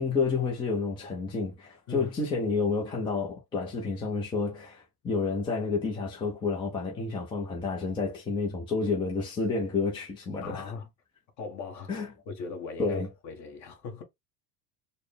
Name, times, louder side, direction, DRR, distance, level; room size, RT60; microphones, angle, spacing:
voice 1, 0.0-10.7 11.9-12.1 12.8-13.1, left 4 dB, 10° left, 0.4 m, -30 dB
voice 2, 10.4-10.9 11.4-11.9 12.3-14.0, left 4 dB, 35° left, 1.2 m, -39 dB
4.1 x 2.1 x 3.3 m
cardioid pair, 170°, 46 cm